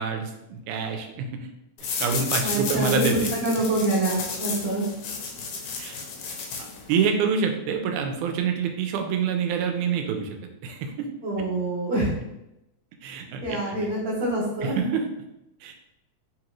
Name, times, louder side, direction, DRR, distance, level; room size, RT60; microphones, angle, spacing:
voice 1, 0.0-1.5 2.0-3.3 5.8-6.0 6.9-11.1 11.4-11.5 13.0-13.9 14.6-15.1 15.6-15.7, right 6 dB, 90° right, 4 dB, 2.0 m, -27 dB
sound 1, 1.8-7.1, left 5 dB, 85° left, 2.0 m, -32 dB
voice 2, 2.4-4.9 11.2-12.1 13.4-14.7, right 1 dB, 50° right, -11 dB, 2.0 m, -26 dB
4.8 x 2.9 x 2.4 m, 0.89 s
omnidirectional pair, 3.5 m